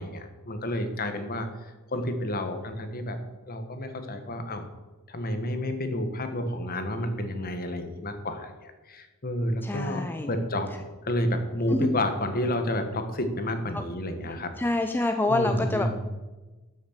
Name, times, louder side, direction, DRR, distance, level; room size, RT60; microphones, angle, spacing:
voice 1, 0.0-3.2 3.5-4.7 5.1-10.7 11.0-14.5 15.3-16.0, left 1 dB, 45° left, 7 dB, 1.5 m, -30 dB
voice 2, 9.6-10.3 11.7-12.0 13.7-13.8 14.6-16.1, left 2 dB, 10° left, 5 dB, 0.5 m, -27 dB
13.0 x 6.5 x 6.7 m, 1.2 s
head